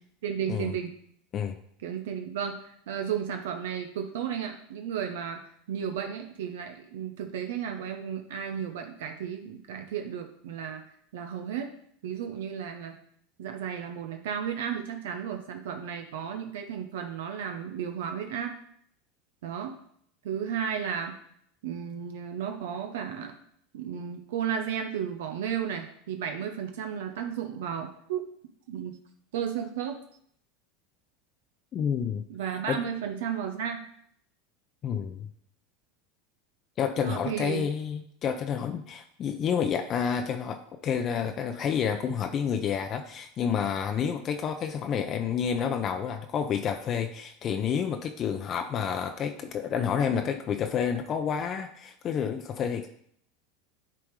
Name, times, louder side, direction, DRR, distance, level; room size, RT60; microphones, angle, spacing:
voice 1, 0.2-0.9 1.8-10.8 11.1-11.7 12.0-13.0 13.4-18.6 19.4-19.8 20.2-21.2 21.6-23.4 23.7-28.2 28.7-29.0 29.3-30.0 32.3-33.8 37.0-37.6 44.0-44.1, right 8 dB, 80° right, 5 dB, 0.9 m, -33 dB
voice 2, 31.7-32.2 32.7-32.8 34.8-35.3 36.8-52.9, left 7 dB, 40° left, 6 dB, 0.6 m, -29 dB
9.9 x 3.5 x 4.8 m, 0.66 s
hypercardioid pair, 105°, 0 cm